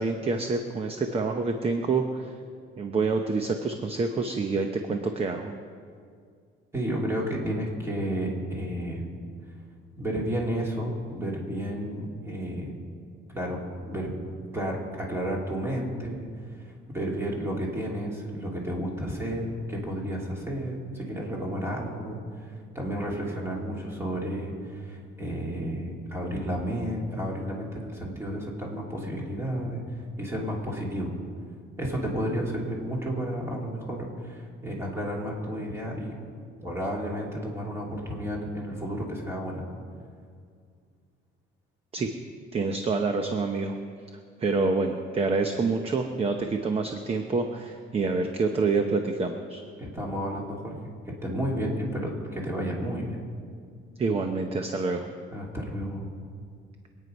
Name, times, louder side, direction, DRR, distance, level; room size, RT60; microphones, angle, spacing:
voice 1, 0.0-2.3 2.8-5.5 41.9-42.1 42.5-43.8 44.4-49.6 54.0-55.1, right 4 dB, 30° right, 5 dB, 0.8 m, -27 dB
voice 2, 6.7-9.1 10.0-12.7 13.3-14.2 14.5-29.8 30.2-31.1 31.8-36.1 36.6-39.6 49.8-53.2 55.3-56.0, equal, 10° right, -2 dB, 2.9 m, -32 dB
23.5 x 9.5 x 5.3 m, 2.2 s
cardioid pair, 155°, 21 cm